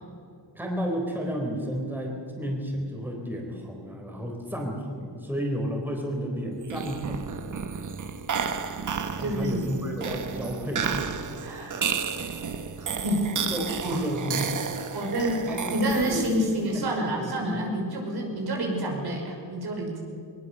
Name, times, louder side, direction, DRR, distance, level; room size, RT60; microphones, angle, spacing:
voice 1, 0.6-7.2 9.2-11.0 13.5-14.5 15.4-15.7 16.1-16.5 16.7-17.7, equal, 5° right, 0 dB, 3.9 m, -32 dB
sound 1, 6.6-16.5, right 6 dB, 45° right, 1.4 m, -32 dB
voice 2, 9.2-9.6 11.4-11.9 13.0-13.3 13.8-14.0 14.9-20.0, right 1 dB, 60° right, 0 dB, 5.8 m, -28 dB
21.0 x 20.5 x 6.9 m, 2.4 s
cardioid pair, 125°, 43 cm